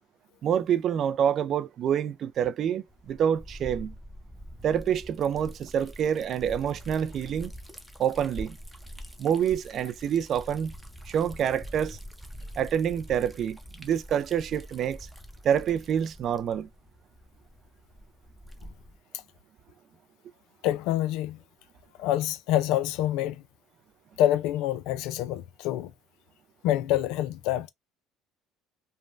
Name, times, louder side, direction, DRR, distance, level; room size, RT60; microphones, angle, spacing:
voice 1, 0.4-3.9 4.6-7.5 8.0-8.6 9.2-10.7 11.1-12.0 12.6-15.1 15.4-16.7, right 8 dB, 50° right, 0.4 m, -27 dB
Liquid, 2.9-19.0, equal, ahead, 0.7 m, -45 dB
voice 2, 20.6-21.4 22.0-23.4 24.2-25.9 26.6-27.7, left 13 dB, 75° left, 0.4 m, -26 dB
3.2 x 2.2 x 2.5 m
supercardioid pair, 90°, 0 cm